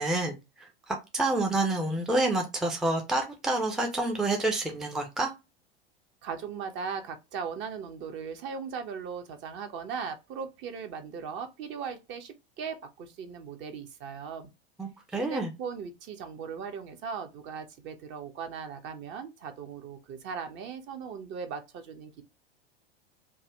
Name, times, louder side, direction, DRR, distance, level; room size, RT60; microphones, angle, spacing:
voice 1, 0.0-5.3 14.8-15.5, right 2 dB, ahead, 0.5 m, -28 dB
voice 2, 6.2-14.5 15.2-22.2, right 6 dB, 40° right, 0.8 m, -38 dB
3.4 x 2.1 x 3.1 m
figure-of-eight pair, 90°, 30 cm